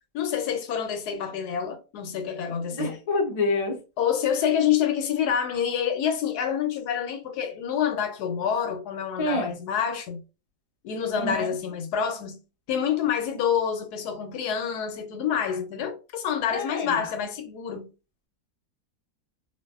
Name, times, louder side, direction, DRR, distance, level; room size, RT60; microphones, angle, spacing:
voice 1, 0.1-3.0 4.0-10.2 10.8-12.4 12.7-17.9, left 8 dB, 75° left, 1.1 m, -27 dB
voice 2, 2.8-3.8 9.2-9.5 11.2-11.5 16.5-17.0, left 2 dB, 40° left, 0.5 m, -27 dB
2.5 x 2.5 x 2.3 m
omnidirectional pair, 1.7 m